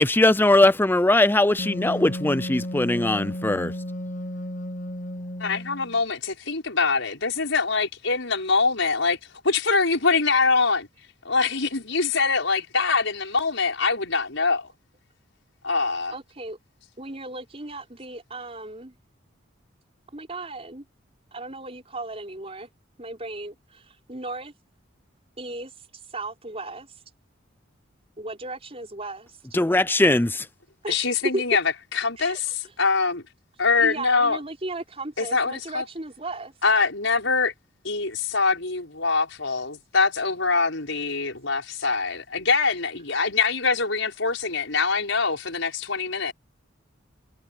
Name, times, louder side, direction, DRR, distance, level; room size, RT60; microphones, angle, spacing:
voice 1, 0.0-3.7 29.5-30.5, left 2 dB, 10° left, 0.5 m, -20 dB
Wind instrument woodwind instrument, 1.6-6.0, left 1 dB, 40° left, 1.1 m, -33 dB
voice 2, 5.4-9.2 9.4-10.9 11.2-14.7 15.6-16.1 30.9-31.6 31.9-32.4 32.8-33.2 33.6-34.4 35.2-35.8 36.6-37.5 37.8-46.3, left 4 dB, 75° left, 5.9 m, -24 dB
voice 3, 16.1-16.6 17.0-18.9 20.1-20.8 21.3-22.7 23.0-24.5 25.4-27.0 28.2-29.6 30.8-31.4 32.2-32.8 33.6-36.6, right 2 dB, 30° right, 4.9 m, -36 dB
head